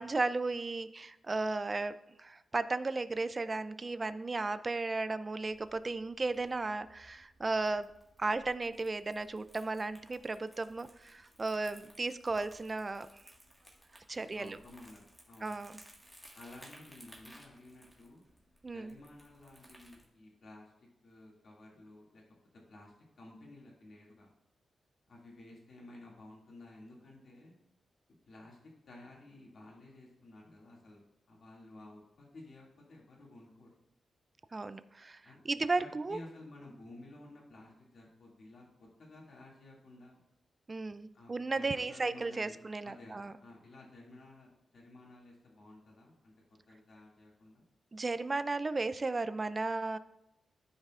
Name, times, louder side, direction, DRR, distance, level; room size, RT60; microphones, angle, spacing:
voice 1, 0.0-7.9 8.2-13.1 14.1-14.6 15.4-15.7 18.6-19.0 34.5-36.2 40.7-43.3 47.9-50.0, right 3 dB, 30° right, 13 dB, 0.4 m, -35 dB
Crumpling crinkling, 5.4-20.1, equal, 5° right, 1.6 m, -60 dB
voice 2, 14.1-15.7 16.3-18.2 18.6-22.2 22.7-24.3 25.1-27.6 28.3-28.6 28.9-31.0 31.3-33.7 35.2-40.2 41.1-42.6 42.8-46.3 46.7-47.6, left 2 dB, 60° left, -3 dB, 2.3 m, -54 dB
13.0 x 5.4 x 2.5 m, 0.86 s
cardioid pair, 95°, 0 cm